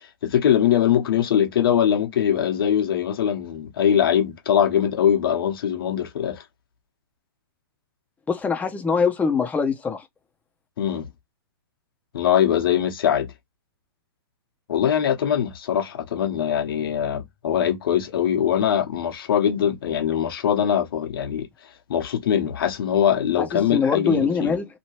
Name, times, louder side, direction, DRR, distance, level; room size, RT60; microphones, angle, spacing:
voice 1, 0.2-6.4 10.8-11.1 12.1-13.3 14.7-21.5 21.9-24.5, left 9 dB, 70° left, 1.1 m, -22 dB
voice 2, 8.3-10.1 23.4-24.7, left 5 dB, 10° left, 0.9 m, -23 dB
2.9 x 2.7 x 3.0 m
hypercardioid pair, 130°, 12 cm